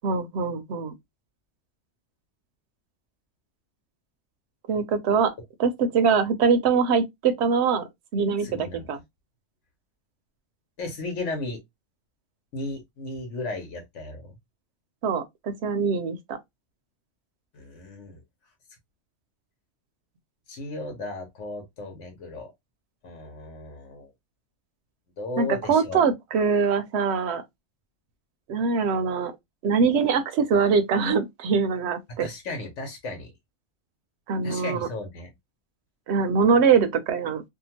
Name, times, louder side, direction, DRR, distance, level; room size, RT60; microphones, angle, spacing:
voice 1, 0.0-0.9 4.7-5.3 5.6-9.0 15.0-16.4 25.4-27.4 28.5-29.3 29.6-32.3 34.3-34.9 36.1-37.4, right 5 dB, 70° right, 0.8 m, -23 dB
voice 2, 8.4-8.9 10.8-11.6 12.5-14.3 17.5-18.2 20.5-22.5 23.0-24.1 25.2-26.0 32.2-33.3 34.4-35.3, left 2 dB, 80° left, 1.2 m, -35 dB
2.7 x 2.3 x 2.8 m
omnidirectional pair, 1.2 m